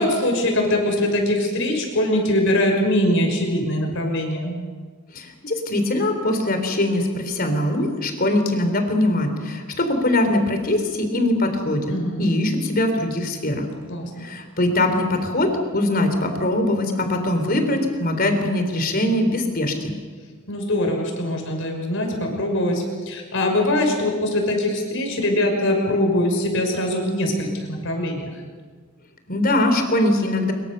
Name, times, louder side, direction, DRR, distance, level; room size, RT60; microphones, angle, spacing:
voice 1, 0.0-4.6 11.9-12.2 13.9-14.2 20.5-28.3, left 1 dB, 65° left, 2 dB, 6.1 m, -22 dB
voice 2, 5.1-11.9 12.2-13.7 14.2-19.9 29.3-30.5, left 1 dB, 45° left, 6 dB, 3.9 m, -22 dB
24.5 x 23.5 x 6.9 m, 1.5 s
head